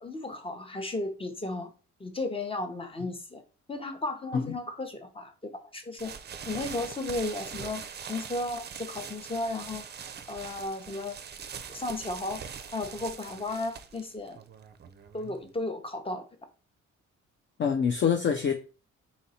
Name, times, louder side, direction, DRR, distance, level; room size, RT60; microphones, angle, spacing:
voice 1, 0.0-1.7 2.0-3.4 3.7-6.1 6.4-9.8 10.3-11.2 11.7-12.5 12.7-14.4 15.1-16.3, left 2 dB, 20° left, 0.8 m, -34 dB
sound 1, 6.0-15.6, right 7 dB, 35° right, 0.5 m, -42 dB
voice 2, 17.6-18.5, left 7 dB, 40° left, 0.5 m, -25 dB
4.2 x 2.5 x 4.2 m
cardioid pair, 90°, 30 cm